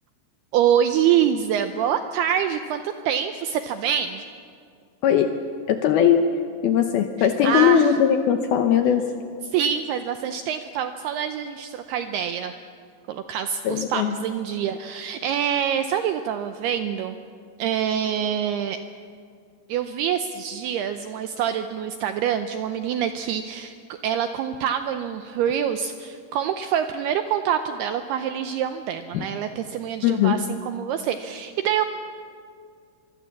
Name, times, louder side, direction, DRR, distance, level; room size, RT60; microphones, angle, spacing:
voice 1, 0.5-4.2 7.4-7.9 9.5-12.6 13.1-17.2 17.6-18.8 19.7-31.8, right 9 dB, 80° right, 8 dB, 2.3 m, -25 dB
voice 2, 5.0-5.4 5.7-9.1 13.6-14.2 29.1-29.3 30.0-30.4, left 8 dB, 75° left, 6 dB, 2.3 m, -20 dB
24.5 x 24.0 x 7.3 m, 2.2 s
omnidirectional pair, 5.4 m